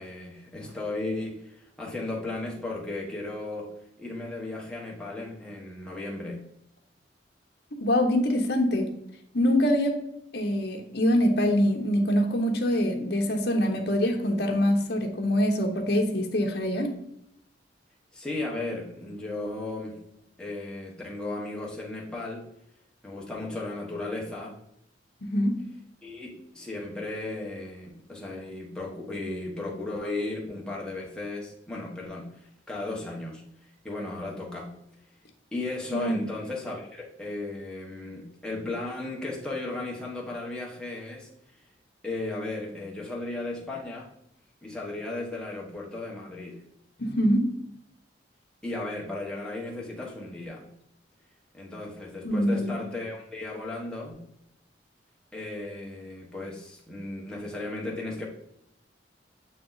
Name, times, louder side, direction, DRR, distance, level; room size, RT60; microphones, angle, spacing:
voice 1, 0.0-3.7 4.0-6.5 18.1-20.0 20.4-22.5 23.0-24.6 26.0-33.4 33.8-34.7 35.5-41.3 42.0-44.1 44.6-46.6 48.6-50.7 51.5-54.2 55.3-58.3, left 2 dB, 5° left, -3 dB, 1.2 m, -35 dB
voice 2, 7.8-8.9 9.3-10.0 10.3-16.9 25.3-25.6 35.9-36.2 47.0-47.5 52.2-52.7, equal, 60° left, 2 dB, 1.0 m, -24 dB
8.4 x 3.0 x 3.9 m, 0.75 s
head